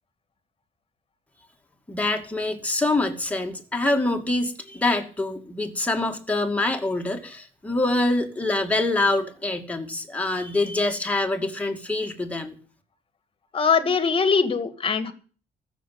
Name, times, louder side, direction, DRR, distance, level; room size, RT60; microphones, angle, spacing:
voice 1, 1.9-12.5, left 2 dB, 10° left, 3 dB, 2.5 m, -25 dB
voice 2, 13.5-15.1, left 5 dB, 30° left, 11 dB, 2.0 m, -22 dB
14.5 x 7.0 x 9.4 m, 0.41 s
cardioid pair, 110°, 17 cm